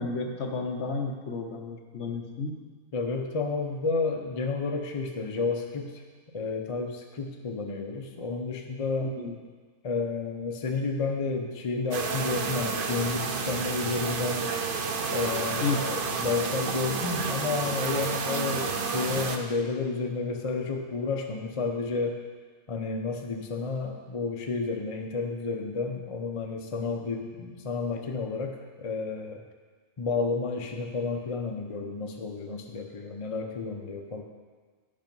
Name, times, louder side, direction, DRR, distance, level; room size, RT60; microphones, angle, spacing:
voice 1, 0.0-2.5 9.0-9.4 15.6-15.8, left 4 dB, 60° left, 3 dB, 1.1 m, -32 dB
voice 2, 2.9-6.0 6.3-9.1 9.8-14.5 15.1-22.2 22.7-29.4 30.0-34.2, left 4 dB, 35° left, 2 dB, 0.6 m, -31 dB
sound 1, 11.9-19.4, right 5 dB, 50° right, 0.7 m, -30 dB
10.0 x 5.3 x 5.3 m, 1.5 s
omnidirectional pair, 1.4 m